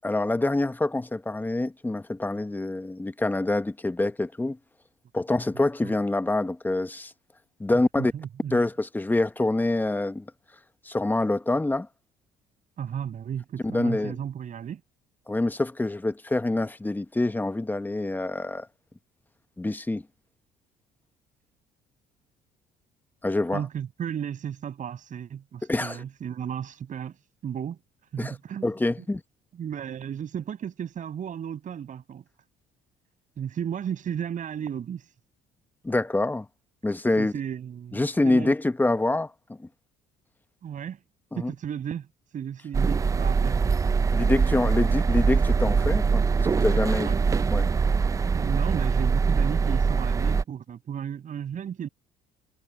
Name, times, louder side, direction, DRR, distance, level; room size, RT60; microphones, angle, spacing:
voice 1, 0.0-4.6 5.1-7.1 7.6-8.1 8.5-10.2 10.8-11.9 13.7-14.1 15.3-18.7 19.6-20.0 23.2-23.6 25.7-26.0 28.2-28.4 28.6-29.2 35.8-36.5 36.8-37.3 37.9-39.7 41.3-41.5 44.1-47.1 47.5-47.7, left 2 dB, 10° left, 0.9 m, -26 dB
voice 2, 8.0-8.5 12.8-14.8 23.5-27.8 28.1-28.7 29.6-32.2 33.4-35.1 37.2-38.5 40.6-41.0 41.3-43.6 47.0-47.2 48.3-51.9, right 8 dB, 50° right, 6.3 m, -34 dB
sound 1, 42.7-50.4, right 5 dB, 20° right, 0.3 m, -23 dB
cardioid pair, 110°, 17 cm